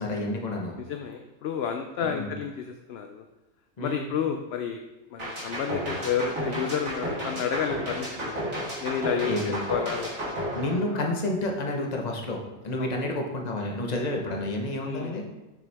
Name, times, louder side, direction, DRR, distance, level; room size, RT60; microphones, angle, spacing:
voice 1, 0.0-0.8 2.0-2.3 3.8-4.1 9.2-9.7 10.5-15.2, left 1 dB, 35° left, 1 dB, 1.0 m, -30 dB
voice 2, 0.8-3.2 3.8-4.8 5.1-8.4 8.8-10.4 10.9-11.1 12.8-13.1 14.8-15.2, left 7 dB, 65° left, 5 dB, 0.7 m, -31 dB
sound 1, 5.2-11.4, equal, 90° right, 2.3 m, -32 dB
6.7 x 6.2 x 3.4 m, 1.1 s
omnidirectional pair, 1.4 m